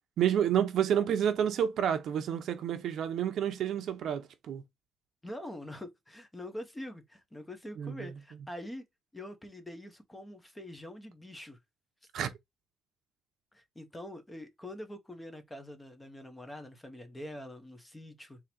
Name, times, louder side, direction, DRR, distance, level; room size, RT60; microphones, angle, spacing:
voice 1, 0.2-4.6 7.8-8.1 12.1-12.3, right 9 dB, 60° right, 0.7 m, -29 dB
voice 2, 5.2-8.8 9.1-11.6 13.5-18.4, left 1 dB, 10° left, 0.9 m, -44 dB
3.8 x 2.9 x 4.3 m
cardioid pair, 150°, 0 cm